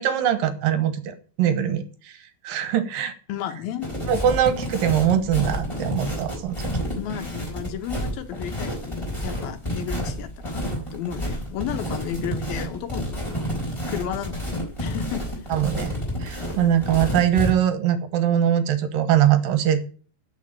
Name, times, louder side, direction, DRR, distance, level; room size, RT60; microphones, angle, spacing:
voice 1, 0.0-2.2 2.4-3.1 4.1-6.6 15.5-15.9 16.2-19.8, right 10 dB, 75° right, 2.9 m, -22 dB
voice 2, 3.3-3.9 6.9-13.5 13.9-15.4 16.6-16.8, left 10 dB, 85° left, 3.1 m, -33 dB
sound 1, 3.8-17.5, equal, 10° left, 4.3 m, -29 dB
10.5 x 6.6 x 8.9 m
omnidirectional pair, 4.2 m